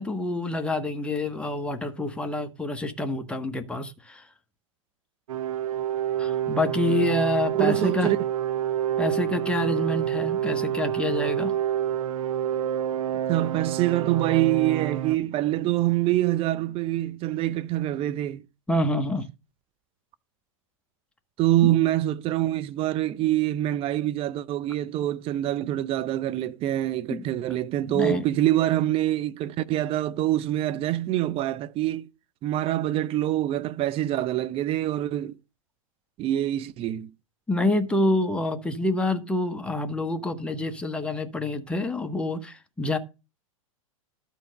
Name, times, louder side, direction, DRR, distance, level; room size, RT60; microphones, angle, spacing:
voice 1, 0.0-4.3 6.2-8.1 9.0-11.5 18.7-19.3 21.6-21.7 27.1-27.2 27.8-28.2 37.5-43.0, left 2 dB, 5° left, 1.3 m, -27 dB
sound 1, 5.3-15.2, right 10 dB, 75° right, 0.6 m, -28 dB
voice 2, 7.5-8.2 13.3-18.4 21.4-32.1 32.4-35.3 36.2-37.1, right 14 dB, 30° right, 0.6 m, -25 dB
12.0 x 4.6 x 6.4 m
hypercardioid pair, 110°, 18 cm